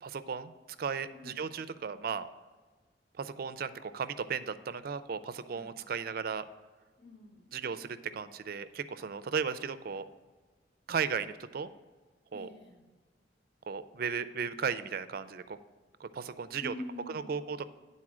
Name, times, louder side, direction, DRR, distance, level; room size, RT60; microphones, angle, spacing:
voice 1, 0.0-0.5 0.8-2.3 3.2-6.5 7.5-10.0 10.9-11.7 12.3-12.5 13.7-15.6 16.0-16.7 17.1-17.7, right 6 dB, 55° right, 13 dB, 0.4 m, -35 dB
voice 2, 7.0-7.5 12.3-12.8 16.6-17.4, left 1 dB, 70° left, 0 dB, 1.7 m, -45 dB
9.8 x 4.1 x 6.1 m, 1.3 s
head